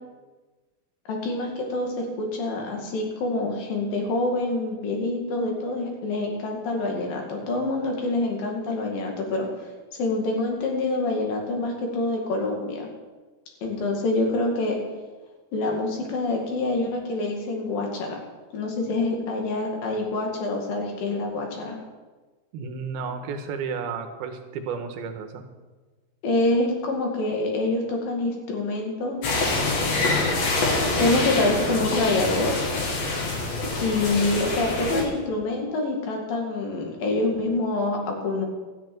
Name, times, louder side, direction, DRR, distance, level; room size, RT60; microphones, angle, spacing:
voice 1, 1.1-9.5 10.0-12.9 13.6-14.8 15.5-18.2 18.5-21.8 26.2-29.6 31.0-32.5 33.4-38.5, left 2 dB, 65° left, 1 dB, 3.9 m, -26 dB
voice 2, 22.5-25.5, right 5 dB, 80° right, 6 dB, 3.0 m, -32 dB
sound 1, 29.2-35.0, left 2 dB, 50° left, 3.0 m, -25 dB
13.5 x 7.8 x 9.2 m, 1.3 s
omnidirectional pair, 4.4 m